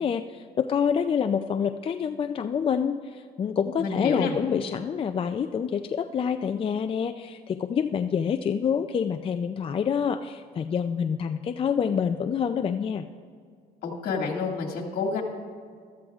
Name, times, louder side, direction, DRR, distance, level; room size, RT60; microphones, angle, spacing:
voice 1, 0.0-13.1, left 7 dB, 35° left, 7 dB, 0.4 m, -27 dB
voice 2, 3.8-4.4 13.8-15.2, left 4 dB, 65° left, 1 dB, 2.2 m, -29 dB
15.0 x 13.5 x 2.4 m, 2.1 s
cardioid pair, 110°, 17 cm